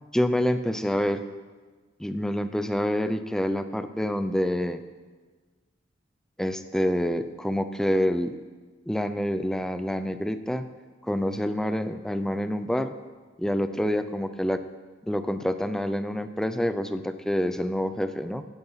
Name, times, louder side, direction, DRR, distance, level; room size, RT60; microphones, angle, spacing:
voice 1, 0.1-1.3 2.0-4.8 6.4-8.4 8.9-10.7 11.0-12.9 13.4-14.6 15.1-18.4, equal, 5° left, 10 dB, 0.6 m, -27 dB
16.0 x 8.8 x 5.7 m, 1.4 s
head